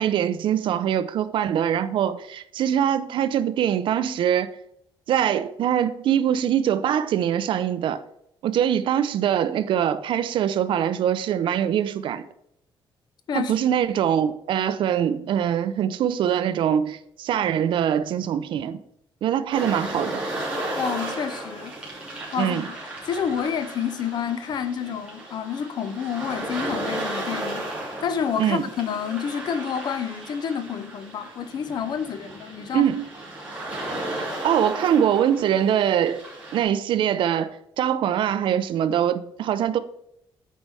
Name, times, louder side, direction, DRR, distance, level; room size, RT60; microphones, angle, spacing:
voice 1, 0.0-4.5 5.1-8.0 8.4-12.3 13.3-18.8 19.2-20.2 22.4-22.7 28.4-28.6 32.7-33.1 34.4-36.2 36.5-39.8, right 9 dB, 65° right, 0.6 m, -23 dB
sound 1, 19.5-36.6, right 1 dB, 15° right, 2.7 m, -34 dB
voice 2, 20.8-21.7 22.3-22.6 23.0-27.7 28.0-32.9, left 7 dB, 50° left, 0.7 m, -29 dB
8.4 x 4.7 x 5.6 m
cardioid pair, 165°, 9 cm